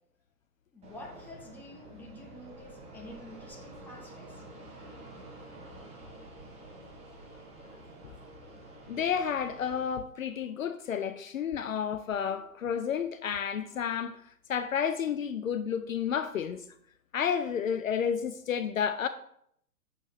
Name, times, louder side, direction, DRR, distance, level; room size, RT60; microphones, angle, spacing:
voice 1, 0.7-4.4 4.8-5.0, left 1 dB, 5° left, 1.0 m, -48 dB
Fixed-wing aircraft airplane, 0.8-9.9, right 1 dB, 15° right, 1.4 m, -49 dB
voice 2, 8.9-14.2 14.5-16.6 17.1-19.1, left 7 dB, 60° left, 0.6 m, -31 dB
7.8 x 6.7 x 2.9 m
figure-of-eight pair, 120°, 46 cm